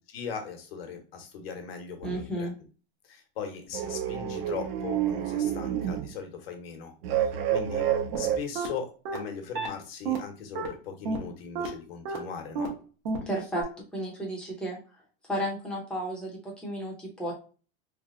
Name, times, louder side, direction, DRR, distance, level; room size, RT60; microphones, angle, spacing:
voice 1, 0.1-2.5 3.0-6.9 7.2-7.9 8.2-12.7, left 6 dB, 75° left, 4 dB, 1.1 m, -39 dB
voice 2, 2.0-2.5 13.3-13.7 13.9-14.8 15.3-17.3, equal, 5° left, -3 dB, 0.7 m, -33 dB
sound 1, 2.0-2.3 3.7-6.2 7.0-8.4, right 10 dB, 85° right, 0.6 m, -29 dB
sound 2, 8.1-8.2 8.5-8.7 9.0-9.2 9.5-9.7 10.0-10.2 10.5-10.7 11.0-11.2 11.5-11.7 12.0-12.2 12.5-12.7 13.0-13.2 13.5-13.6, right 5 dB, 50° right, 1.2 m, -30 dB
3.2 x 2.1 x 3.7 m, 0.37 s
supercardioid pair, 170°, 30 cm